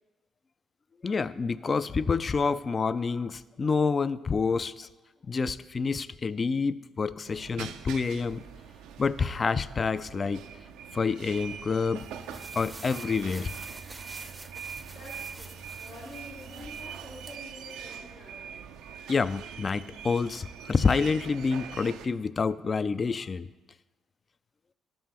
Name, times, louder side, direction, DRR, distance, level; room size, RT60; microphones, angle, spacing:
voice 1, 1.0-4.9 5.3-8.4 9.0-10.4 10.9-12.0 12.6-13.5 19.1-23.5, left 5 dB, 45° left, 15 dB, 0.3 m, -28 dB
sound 1, 7.3-22.1, right 8 dB, 80° right, 0.4 m, -43 dB
sound 2, 12.0-17.4, right 2 dB, 25° right, 0.5 m, -46 dB
voice 2, 14.9-18.7, left 1 dB, 80° left, -7 dB, 1.5 m, -48 dB
13.0 x 5.5 x 2.9 m, 1.2 s
hypercardioid pair, 50°, 0 cm